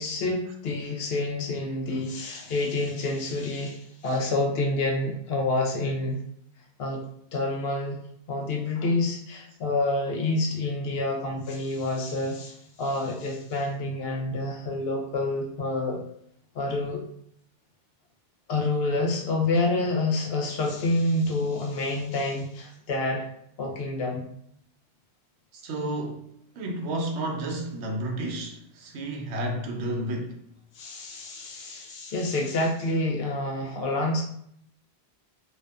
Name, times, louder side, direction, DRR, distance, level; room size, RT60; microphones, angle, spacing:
voice 1, 0.0-6.2 6.8-7.0 7.3-8.0 8.3-16.0 16.5-17.0 18.5-23.3 23.6-24.2 30.7-34.2, left 2 dB, 70° left, 0.8 m, -28 dB
voice 2, 25.5-30.4, right 1 dB, 90° right, 0.9 m, -32 dB
2.5 x 2.3 x 2.3 m
omnidirectional pair, 1.1 m